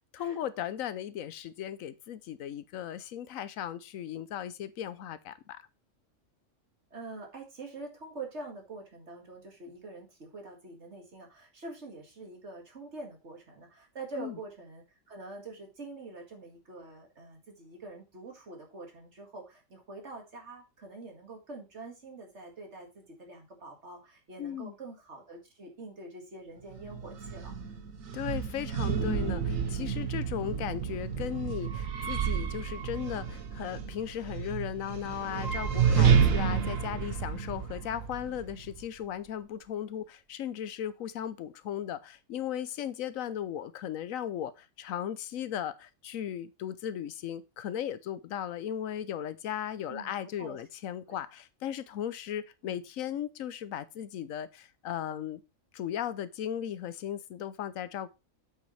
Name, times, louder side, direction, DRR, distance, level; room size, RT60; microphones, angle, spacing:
voice 1, 0.0-5.6 14.2-14.4 24.4-24.7 28.1-55.4 55.7-58.1, left 10 dB, 85° left, 1.1 m, -37 dB
voice 2, 6.9-27.5 49.9-50.6 51.1-51.2 52.6-52.8, right 3 dB, 60° right, 2.3 m, -45 dB
sound 1, 26.7-38.9, right 7 dB, 80° right, 1.4 m, -30 dB
8.2 x 6.6 x 3.2 m
omnidirectional pair, 1.4 m